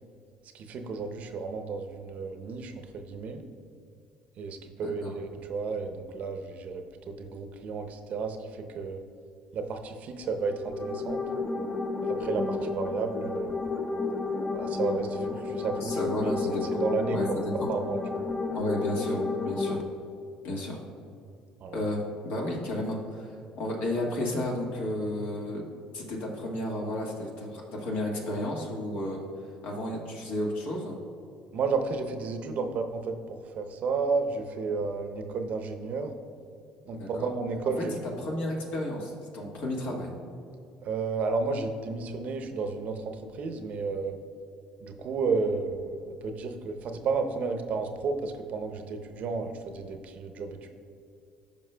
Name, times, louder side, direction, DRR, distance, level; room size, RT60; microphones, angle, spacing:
voice 1, 0.5-3.4 4.4-9.0 9.5-11.2 12.1-13.6 14.5-16.3 16.6-18.3 21.6-21.8 31.5-36.1 36.9-37.9 40.8-44.1 44.8-50.7, right 4 dB, 60° right, 6 dB, 0.7 m, -32 dB
voice 2, 4.8-5.1 15.8-16.8 17.1-17.7 18.5-19.8 20.4-20.8 21.7-23.3 23.6-25.6 25.9-29.2 29.6-31.0 36.9-37.3 38.2-40.1, left 1 dB, 70° left, -1 dB, 1.5 m, -32 dB
sound 1, 10.4-19.8, left 3 dB, 20° left, 0.7 m, -31 dB
12.5 x 5.3 x 2.2 m, 2.5 s
supercardioid pair, 75°, 3 cm